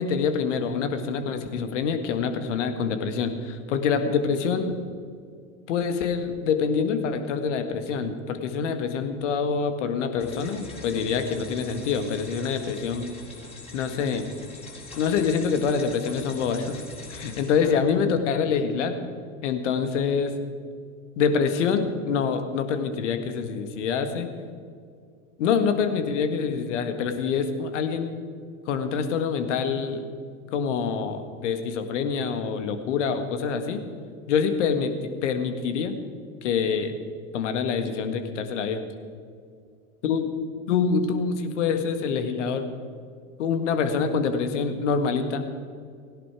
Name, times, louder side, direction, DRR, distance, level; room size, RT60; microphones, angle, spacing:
voice 1, 0.0-4.8 5.7-13.1 13.7-14.3 15.0-16.8 17.1-19.0 19.4-20.3 21.2-24.3 25.4-28.2 28.7-30.1 30.5-33.8 34.3-34.9 35.2-35.9 36.4-37.0 37.3-38.8 40.0-40.3 40.7-42.6 43.4-45.4, left 6 dB, 55° left, 8 dB, 1.8 m, -26 dB
sound 1, 10.2-18.1, left 3 dB, 15° left, 4.4 m, -43 dB
17.5 x 17.0 x 4.9 m, 2.2 s
figure-of-eight pair, 90°, 42 cm